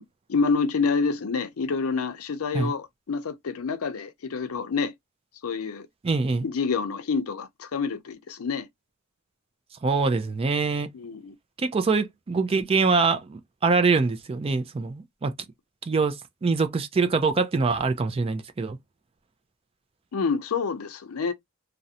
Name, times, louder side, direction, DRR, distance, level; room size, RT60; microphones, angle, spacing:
voice 1, 0.3-4.9 5.4-5.9 6.4-8.7 10.9-11.3 20.1-21.3, left 5 dB, 85° left, 0.5 m, -27 dB
voice 2, 6.0-6.5 9.8-10.9 11.6-15.3 15.9-18.8, right 4 dB, 25° right, 0.3 m, -24 dB
2.4 x 2.0 x 2.7 m
head